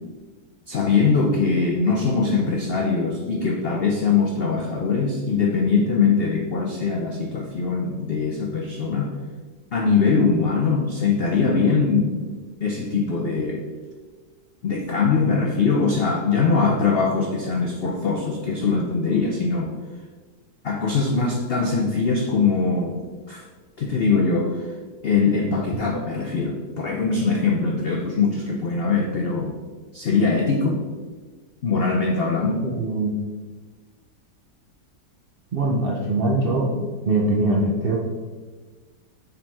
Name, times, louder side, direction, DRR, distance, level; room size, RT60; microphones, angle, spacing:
voice 1, 0.7-9.2 9.7-12.2 12.6-13.6 14.6-19.7 20.6-23.4 23.8-24.7 25.0-29.5 29.9-30.8 31.6-32.6, left 4 dB, 85° left, 1 dB, 0.5 m, -22 dB
voice 2, 32.6-33.2 35.5-36.8 37.1-38.0, right 2 dB, 65° right, -2 dB, 0.5 m, -22 dB
6.8 x 4.0 x 4.6 m, 1.4 s
omnidirectional pair, 1.9 m